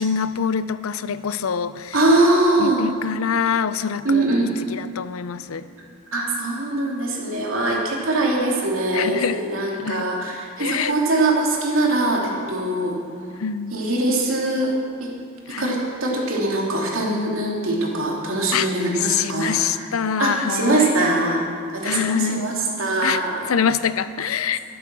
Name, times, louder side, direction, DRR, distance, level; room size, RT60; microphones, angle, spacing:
voice 1, 0.0-2.0 2.6-5.7 8.9-9.4 9.8-10.0 10.6-10.9 13.4-13.8 15.5-15.8 18.5-18.7 18.9-20.9 21.8-22.5 23.0-23.2 23.5-24.6, left 7 dB, 80° left, 14 dB, 0.5 m, -25 dB
voice 2, 1.9-2.9 4.0-4.5 6.1-13.0 13.7-14.7 15.0-15.1 15.6-19.9 20.2-21.4 21.7-23.5, right 2 dB, 70° right, -2 dB, 2.7 m, -22 dB
12.0 x 12.0 x 6.1 m, 2.3 s
head